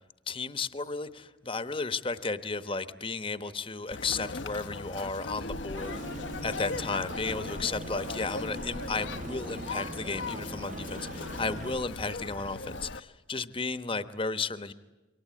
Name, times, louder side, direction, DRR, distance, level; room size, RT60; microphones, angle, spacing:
voice 1, 0.3-6.0 6.4-14.7, left 4 dB, 30° left, 11 dB, 1.0 m, -34 dB
Conversation, 3.9-13.0, left 3 dB, 75° left, 0.9 m, -39 dB
Aircraft, 5.8-11.8, right 2 dB, 40° right, 1.2 m, -41 dB
28.0 x 24.0 x 8.6 m, 1.2 s
head